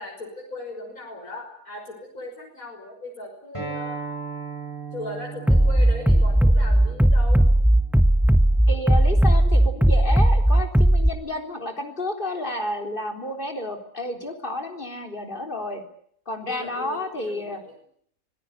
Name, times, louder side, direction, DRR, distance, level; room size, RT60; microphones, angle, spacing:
voice 1, 0.0-4.0 4.9-7.5 14.2-14.3 16.5-17.7, left 1 dB, 85° left, 0 dB, 6.3 m, -38 dB
Acoustic guitar, 3.5-8.7, right 4 dB, 20° left, 8.0 m, -38 dB
Bass drum, 5.5-11.1, right 1 dB, ahead, 0.8 m, -17 dB
voice 2, 8.7-15.8 16.3-17.6, left 1 dB, 35° left, 4 dB, 4.1 m, -31 dB
26.0 x 17.5 x 9.9 m, 0.66 s
omnidirectional pair, 1.5 m